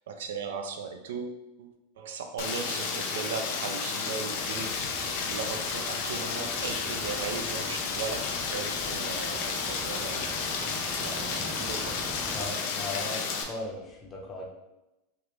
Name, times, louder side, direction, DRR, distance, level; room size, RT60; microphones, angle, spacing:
voice 1, 0.1-10.4 11.0-12.1, right 5 dB, 80° right, 5 dB, 0.4 m, -38 dB
Rain, 2.4-13.4, left 5 dB, 65° left, 0.5 m, -32 dB
Car passing by, 4.3-12.5, right 1 dB, 5° right, 0.6 m, -45 dB
voice 2, 12.3-14.5, left 2 dB, 25° left, -1 dB, 0.9 m, -38 dB
3.3 x 2.4 x 3.0 m, 0.96 s
hypercardioid pair, 110°, 0 cm